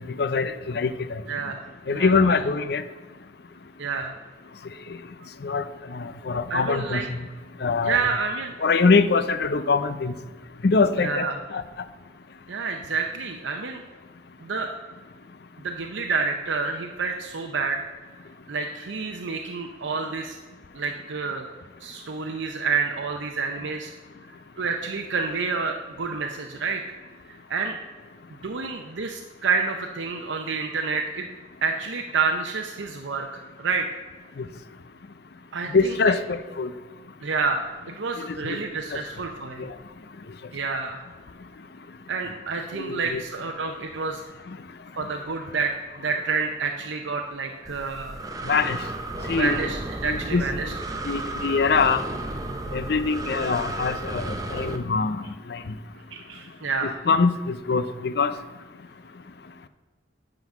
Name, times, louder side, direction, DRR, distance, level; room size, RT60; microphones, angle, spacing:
voice 1, 0.2-1.2 1.9-2.8 5.4-5.6 5.9-7.2 7.6-8.0 8.6-10.1 10.6-11.3 11.5-11.6 34.4-34.5 35.7-36.7 38.4-38.6 39.6-39.7 42.7-43.2 48.5-48.8 49.3-49.7 50.0-50.7 51.1-52.0 52.7-55.2 55.5-55.6 56.8-58.3, left 4 dB, 55° left, 11 dB, 0.5 m, -23 dB
voice 2, 1.3-1.6 1.9-2.3 3.8-4.1 6.5-7.1 7.8-8.5 11.0-11.4 12.5-13.8 14.4-14.7 15.6-17.8 18.5-20.4 20.7-21.5 21.8-23.9 24.3-26.8 27.3-27.7 28.4-31.3 31.6-33.9 35.5-35.9 37.2-37.7 38.0-39.7 40.5-41.0 42.1-44.2 44.9-48.2 49.3-50.7 56.1-57.0, right 4 dB, 80° right, 3 dB, 0.6 m, -28 dB
Breathing, 47.7-54.8, right 2 dB, 20° right, 0.7 m, -33 dB
10.5 x 3.9 x 7.1 m, 1.3 s
head